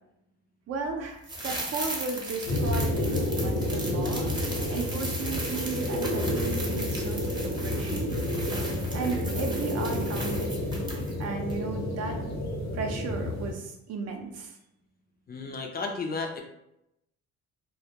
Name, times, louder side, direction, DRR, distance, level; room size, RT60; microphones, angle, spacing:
voice 1, 0.7-4.3 4.7-8.2 8.9-10.5 11.2-12.2 12.7-14.6, right 4 dB, 55° right, 3 dB, 0.5 m, -35 dB
sound 1, 1.2-11.2 11.5-11.6, right 1 dB, 15° right, 0.6 m, -37 dB
sound 2, 2.5-13.5, left 1 dB, 60° left, 0.8 m, -30 dB
voice 2, 15.3-16.4, left 4 dB, 30° left, 2 dB, 0.4 m, -33 dB
2.2 x 2.1 x 2.7 m, 0.82 s
cardioid pair, 90°, 30 cm